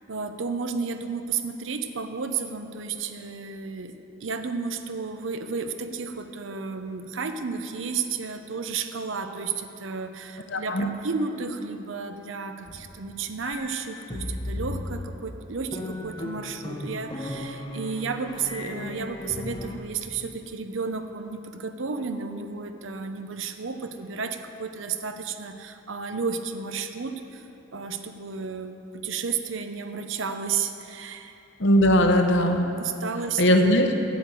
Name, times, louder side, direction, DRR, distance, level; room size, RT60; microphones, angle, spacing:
voice 1, 0.1-3.9 4.2-31.4 32.8-33.4, right 5 dB, 70° right, 8 dB, 0.7 m, -32 dB
voice 2, 10.5-10.9 31.6-32.7 33.4-33.9, equal, 65° left, 5 dB, 0.9 m, -19 dB
sound 1, 12.7-19.8, left 1 dB, 20° left, 0.8 m, -36 dB
9.5 x 8.3 x 7.7 m, 2.9 s
head